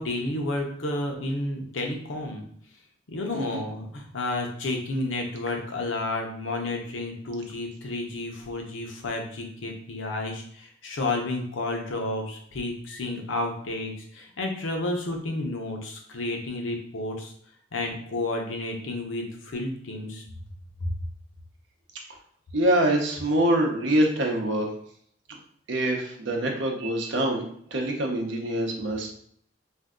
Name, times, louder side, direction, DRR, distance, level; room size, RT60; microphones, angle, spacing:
voice 1, 0.0-2.4 3.1-17.3 17.7-20.2 20.8-20.9, left 2 dB, 85° left, 2 dB, 0.6 m, -31 dB
voice 2, 22.5-24.7 25.3-25.4 25.7-27.4 27.7-29.1, right 1 dB, 70° right, 1 dB, 0.7 m, -25 dB
2.6 x 2.2 x 3.6 m, 0.64 s
head